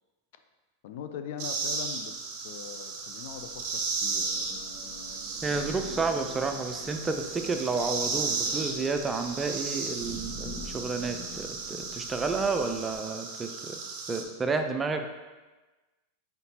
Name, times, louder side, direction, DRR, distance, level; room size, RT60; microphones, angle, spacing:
voice 1, 0.8-2.1 2.4-4.2, left 8 dB, 65° left, 7 dB, 0.3 m, -41 dB
sound 1, 1.4-14.2, right 4 dB, 50° right, 0.7 m, -35 dB
Thunder / Rain, 3.2-13.0, left 1 dB, 85° left, 1.0 m, -47 dB
Guitar, 4.0-9.3, equal, 15° left, 1.0 m, -49 dB
voice 2, 5.4-13.8 14.1-15.1, right 4 dB, 20° right, 6 dB, 0.4 m, -31 dB
4.3 x 3.9 x 2.8 m, 1.2 s
hypercardioid pair, 100°, 0 cm